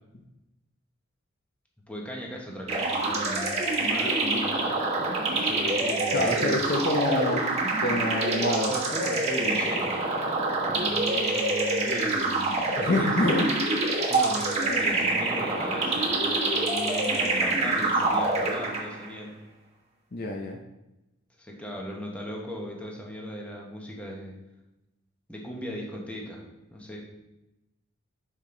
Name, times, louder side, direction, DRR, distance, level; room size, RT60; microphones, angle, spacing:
voice 1, 1.9-4.6 5.3-6.6 8.7-9.9 10.6-13.3 14.1-19.4 21.4-24.3 25.3-27.0, equal, 5° left, -2 dB, 1.1 m, -37 dB
sound 1, 2.7-19.1, right 2 dB, 30° right, 1.2 m, -26 dB
voice 2, 6.1-7.4 7.8-8.7 12.8-13.7 20.1-20.6, left 1 dB, 45° left, 1 dB, 0.6 m, -26 dB
5.5 x 5.1 x 3.8 m, 0.95 s
head